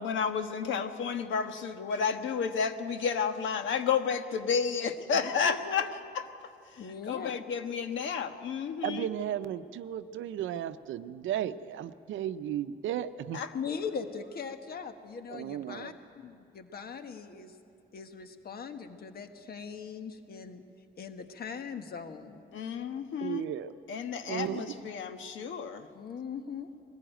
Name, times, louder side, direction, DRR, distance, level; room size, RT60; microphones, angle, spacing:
voice 1, 0.0-5.9 6.1-6.3 6.7-6.8 7.1-9.1 13.3-13.5 15.8-15.9 22.5-23.5 23.9-25.9, left 6 dB, 75° left, 8 dB, 1.3 m, -31 dB
voice 2, 5.1-5.9 6.8-7.3 13.5-15.9 16.5-17.6 17.9-22.4 25.9-26.7, left 6 dB, 50° left, 7 dB, 1.5 m, -40 dB
voice 3, 8.8-13.4 15.3-15.9 23.2-23.7 24.3-24.9, right 11 dB, 80° right, 12 dB, 0.7 m, -35 dB
21.5 x 15.0 x 9.1 m, 2.4 s
cardioid pair, 90°, 20 cm